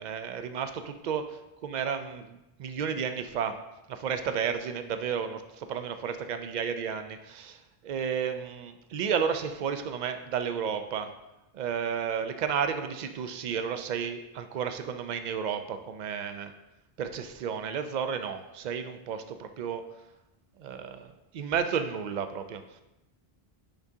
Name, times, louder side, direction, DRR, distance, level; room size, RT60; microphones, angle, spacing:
voice 1, 0.0-1.3 1.6-3.6 3.9-11.1 11.5-16.5 17.0-19.8 20.6-22.6, right 7 dB, 55° right, 8 dB, 0.5 m, -32 dB
10.0 x 3.6 x 2.7 m, 0.94 s
omnidirectional pair, 1.0 m